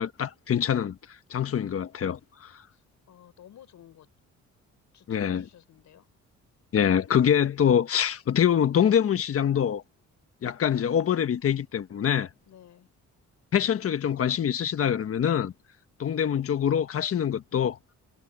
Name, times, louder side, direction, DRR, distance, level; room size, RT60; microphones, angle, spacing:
voice 1, 0.0-2.6 5.1-5.5 6.7-9.8 10.4-12.3 13.5-15.5 16.0-17.8, left 9 dB, 50° left, 1.3 m, -25 dB
voice 2, 2.7-4.1 4.9-6.1 12.5-12.9, left 11 dB, 70° left, 5.6 m, -53 dB
cardioid pair, 90°, 30 cm